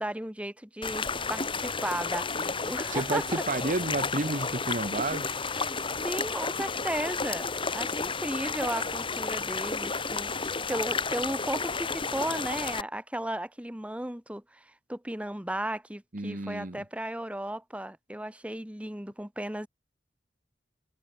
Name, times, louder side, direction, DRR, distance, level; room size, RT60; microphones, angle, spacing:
voice 1, 0.0-3.4 5.1-5.8 6.0-7.5 7.7-19.7, right 1 dB, 5° right, 1.3 m, -35 dB
sound 1, 0.8-12.8, left 4 dB, 30° left, 2.9 m, -32 dB
voice 2, 2.9-5.3 16.1-16.8, right 2 dB, 45° right, 1.3 m, -31 dB
head